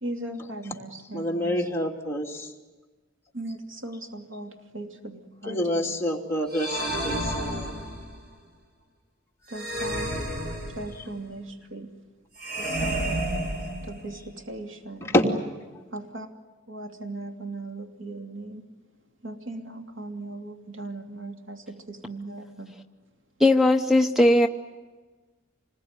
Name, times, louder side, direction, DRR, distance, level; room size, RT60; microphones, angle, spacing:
voice 1, 0.0-1.6 3.3-5.9 9.5-10.1 10.7-11.9 12.6-13.3 13.8-15.1 15.9-16.3 16.7-18.7 19.2-22.8, right 2 dB, 85° right, 3 dB, 2.7 m, -38 dB
voice 2, 1.1-2.5 5.4-7.7 11.0-11.1 15.0-15.3, equal, 15° left, -1 dB, 2.9 m, -27 dB
sound 1, 6.5-8.2 9.5-11.1 12.4-14.2, right 1 dB, 60° right, 6.5 m, -31 dB
voice 3, 23.4-24.5, left 1 dB, ahead, 5 dB, 0.9 m, -18 dB
27.5 x 21.0 x 9.6 m, 1.3 s
head